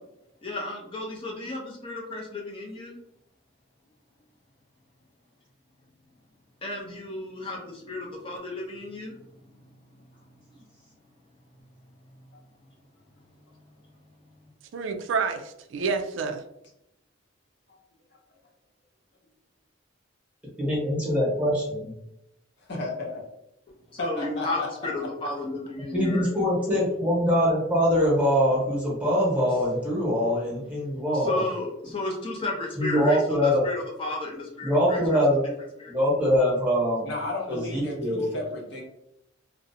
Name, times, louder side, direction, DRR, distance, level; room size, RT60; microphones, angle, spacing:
voice 1, 0.4-3.0 6.6-9.1 23.9-26.3 31.2-35.0 35.8-35.9, left 2 dB, 30° left, -2 dB, 0.5 m, -33 dB
voice 2, 14.7-16.4, right 5 dB, 80° right, 7 dB, 0.3 m, -28 dB
voice 3, 20.6-21.9 25.9-31.4 32.8-33.6 34.6-35.4 35.9-37.1 37.5-38.3, equal, 5° right, -6 dB, 1.0 m, -23 dB
voice 4, 22.7-23.2 24.0-24.7 37.0-38.8, left 2 dB, 60° left, -2 dB, 0.7 m, -33 dB
2.5 x 2.0 x 2.6 m, 0.82 s
head